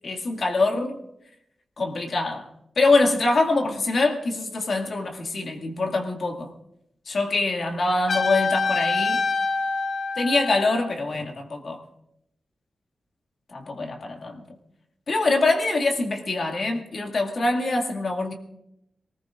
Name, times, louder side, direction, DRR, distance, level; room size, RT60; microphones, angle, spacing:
voice 1, 0.0-1.0 1.8-2.5 2.8-6.5 7.1-9.2 10.2-11.8 13.5-14.4 15.1-18.3, left 3 dB, 55° left, 2 dB, 2.2 m, -24 dB
Trumpet, 8.1-10.9, left 4 dB, 75° left, 6.9 m, -26 dB
27.0 x 19.5 x 2.5 m, 0.80 s
wide cardioid pair, 135°, 0 cm